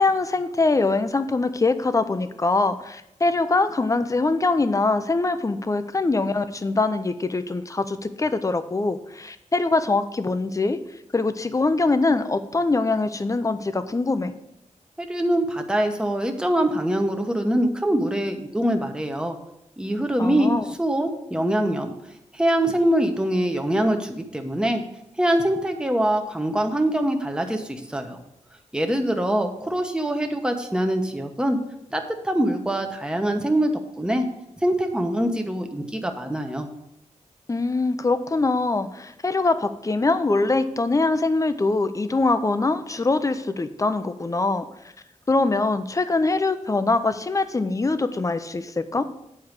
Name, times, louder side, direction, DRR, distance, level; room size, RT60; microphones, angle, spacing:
voice 1, 0.0-10.8 11.1-14.3 20.2-20.6 37.5-44.6 45.3-49.1, left 3 dB, 25° left, 10 dB, 0.6 m, -23 dB
voice 2, 15.0-19.4 19.8-21.9 22.3-24.8 25.2-28.2 28.7-31.6 31.9-33.7 34.0-34.3 34.6-36.7, right 1 dB, 5° right, 4 dB, 1.0 m, -23 dB
8.7 x 4.7 x 6.5 m, 0.82 s
wide cardioid pair, 115°, 13 cm